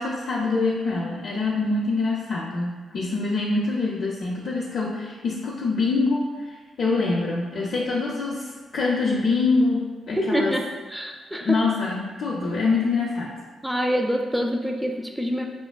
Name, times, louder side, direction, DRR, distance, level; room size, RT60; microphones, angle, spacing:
voice 1, 0.0-10.5 11.4-13.3, left 3 dB, 65° left, -4 dB, 0.4 m, -25 dB
voice 2, 10.2-10.6 10.9-11.6 13.6-15.4, equal, 5° right, 2 dB, 0.4 m, -25 dB
4.3 x 2.4 x 2.2 m, 1.4 s
cardioid pair, 90°, 0 cm